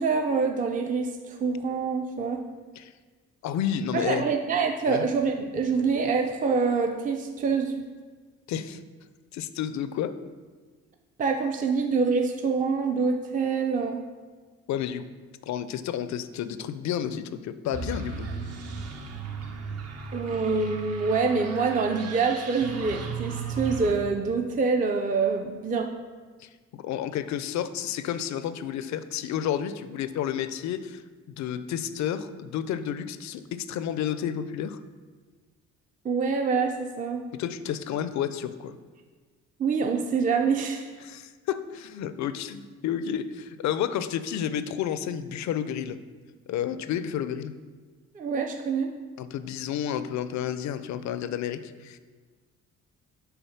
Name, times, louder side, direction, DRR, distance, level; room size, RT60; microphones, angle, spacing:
voice 1, 0.0-2.4 3.9-7.7 11.2-14.0 20.1-25.9 36.0-37.2 39.6-40.9 48.1-48.9, right 5 dB, 25° right, 4 dB, 0.4 m, -26 dB
voice 2, 3.4-4.3 4.9-5.1 8.5-8.8 9.3-10.2 14.7-15.1 15.4-18.3 26.4-34.8 37.3-38.8 41.0-46.0 46.5-47.5 49.2-52.0, left 9 dB, 65° left, 12 dB, 0.5 m, -31 dB
sound 1, 17.7-23.9, right 5 dB, 55° right, 0.8 m, -36 dB
5.7 x 4.0 x 5.7 m, 1.4 s
cardioid pair, 90°, 30 cm